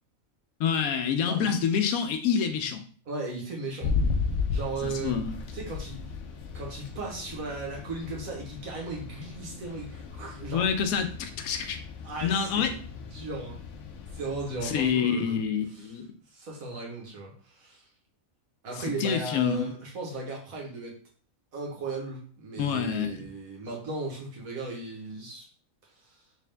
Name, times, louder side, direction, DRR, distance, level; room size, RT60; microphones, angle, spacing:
voice 1, 0.6-2.8 4.8-5.4 10.5-11.8 12.2-12.7 14.6-16.1 19.0-19.7 22.6-23.3, left 7 dB, 90° left, 7 dB, 1.1 m, -27 dB
voice 2, 1.2-1.6 3.1-4.0 4.5-5.2 5.5-6.1 6.5-10.7 12.0-13.6 14.1-15.5 15.7-16.0 16.3-17.8 18.6-21.0 21.5-25.5 26.0-26.2, right 3 dB, 85° right, -1 dB, 1.6 m, -37 dB
sound 1, 3.8-14.9, left 5 dB, 65° left, 0.9 m, -35 dB
3.5 x 3.1 x 3.3 m, 0.44 s
omnidirectional pair, 1.4 m